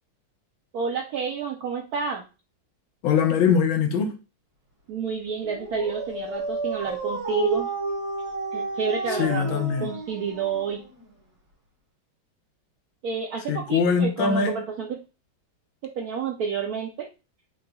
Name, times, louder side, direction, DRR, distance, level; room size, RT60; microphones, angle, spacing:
voice 1, 0.7-2.2 4.9-7.7 8.5-10.8 13.0-15.0 16.0-17.1, right 5 dB, 75° right, 0.8 m, -30 dB
voice 2, 3.0-4.2 9.2-9.9 13.5-14.6, left 6 dB, 80° left, 1.6 m, -22 dB
Dog, 5.4-11.1, right 3 dB, 60° right, 2.9 m, -31 dB
4.8 x 3.8 x 2.2 m
omnidirectional pair, 2.2 m